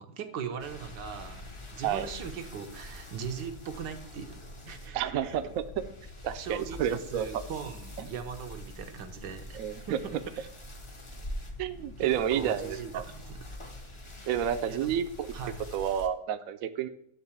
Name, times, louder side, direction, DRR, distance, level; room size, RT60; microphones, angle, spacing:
voice 1, 0.0-4.4 4.6-5.4 6.4-9.6 9.9-10.5 12.0-13.4 14.7-15.0 15.3-15.6, right 7 dB, 85° right, 6 dB, 1.6 m, -40 dB
sound 1, 0.6-16.1, left 1 dB, 25° left, 0.6 m, -44 dB
voice 2, 4.9-5.6 6.2-7.3 9.5-10.0 11.6-13.0 14.3-15.3 15.7-16.9, right 9 dB, 65° right, 9 dB, 0.9 m, -30 dB
11.0 x 3.7 x 7.3 m, 0.71 s
omnidirectional pair, 1.9 m